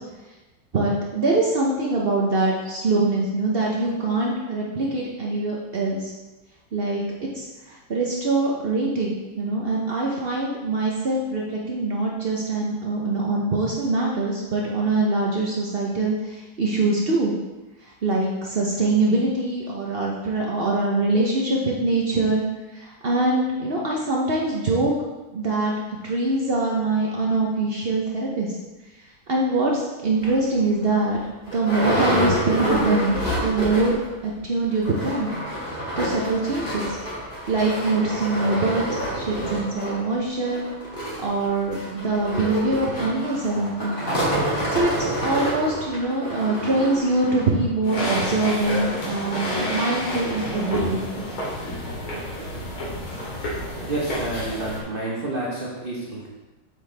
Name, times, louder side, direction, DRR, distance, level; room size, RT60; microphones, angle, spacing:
voice 1, 0.7-6.1 6.7-17.3 18.0-22.4 22.7-24.9 25.3-25.7 26.0-28.6 29.3-31.2 31.5-34.0 34.2-35.3 36.0-36.9 37.5-40.6 41.2-43.9 44.7-51.1, right 2 dB, 65° right, -3 dB, 0.5 m, -23 dB
sound 1, 30.2-30.3 30.8-30.9 31.1-34.1 34.4-34.5 34.7-47.5 48.1-48.2 48.6-48.7, equal, 25° left, 3.1 m, -27 dB
sound 2, 47.8-54.8, equal, 75° left, 3.0 m, -29 dB
voice 2, 53.9-56.3, right 2 dB, 35° right, -5 dB, 1.0 m, -29 dB
8.0 x 6.7 x 3.4 m, 1.1 s
omnidirectional pair, 2.3 m